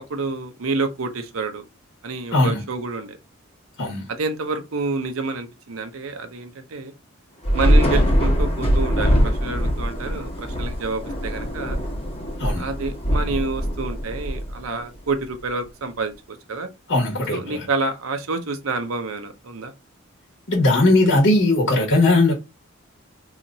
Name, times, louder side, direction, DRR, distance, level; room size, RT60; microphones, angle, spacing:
voice 1, 0.0-1.6 2.0-3.2 4.1-6.9 7.5-11.8 12.6-16.7 17.3-19.7, right 3 dB, 75° right, 0.7 m, -28 dB
Thunder / Rain, 7.4-15.0, equal, 30° left, 1.0 m, -22 dB
voice 2, 16.9-17.6 20.5-22.3, left 2 dB, 60° left, 1.1 m, -18 dB
2.8 x 2.5 x 3.9 m
head